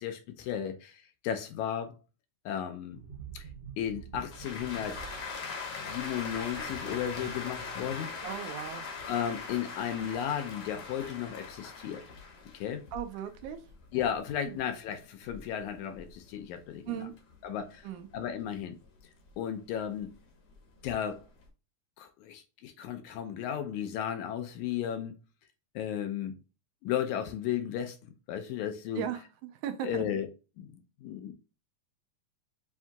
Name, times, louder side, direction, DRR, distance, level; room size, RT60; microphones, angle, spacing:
voice 1, 0.0-2.0 2.5-3.0 3.3-3.5 3.8-5.0 5.4-8.1 9.1-12.0 12.5-12.8 13.9-17.1 17.4-17.9 18.1-18.8 19.4-20.1 20.8-21.2 22.0-25.2 25.8-26.3 26.8-28.0 28.3-29.1 29.8-30.3 30.6-30.8 31.0-31.3, left 9 dB, 75° left, 1.9 m, -34 dB
sound 1, 2.9-10.3 10.6-10.8, right 5 dB, 65° right, 1.6 m, -49 dB
sound 2, 4.3-16.8 17.2-19.3 19.8-21.4, left 4 dB, 60° left, 1.7 m, -42 dB
voice 2, 8.2-8.9 12.9-13.6 14.5-14.6 16.9-17.1 17.8-18.1 29.0-29.2 29.6-30.1, right 11 dB, 80° right, 2.0 m, -36 dB
7.1 x 2.7 x 2.2 m
omnidirectional pair, 3.6 m